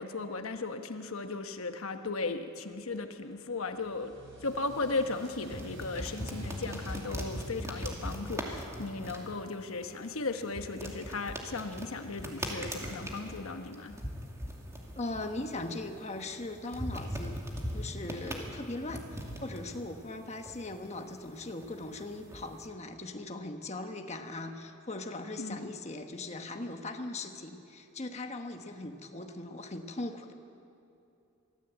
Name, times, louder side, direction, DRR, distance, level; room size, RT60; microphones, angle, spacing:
voice 1, 0.0-4.1 4.4-14.0 25.4-25.6, left 3 dB, 85° left, 7 dB, 1.1 m, -36 dB
sound 1, 3.5-8.9, right 1 dB, 60° right, 5.4 m, -51 dB
sound 2, 4.4-22.7, equal, 15° right, 2.4 m, -41 dB
voice 2, 14.9-17.4 17.7-30.3, left 2 dB, 30° left, 5 dB, 1.3 m, -39 dB
23.5 x 15.0 x 8.1 m, 2.7 s
head